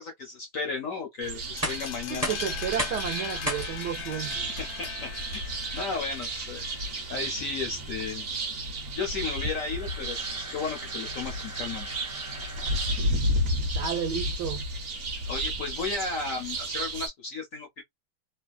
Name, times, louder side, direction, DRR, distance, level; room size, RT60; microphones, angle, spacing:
voice 1, 0.0-1.4 1.7-2.4 4.5-6.6 7.1-8.3 8.9-11.9 13.7-13.8 15.2-17.8, left 4 dB, 60° left, 0.9 m, -34 dB
sound 1, 1.2-17.1, equal, 50° right, 1.0 m, -33 dB
sound 2, 1.4-13.3, equal, 15° right, 0.6 m, -40 dB
sound 3, 1.6-7.1, left 9 dB, 80° left, 1.3 m, -40 dB
voice 2, 2.1-4.5 13.7-14.6, right 8 dB, 70° right, 1.0 m, -32 dB
3.2 x 2.2 x 2.3 m
omnidirectional pair, 2.2 m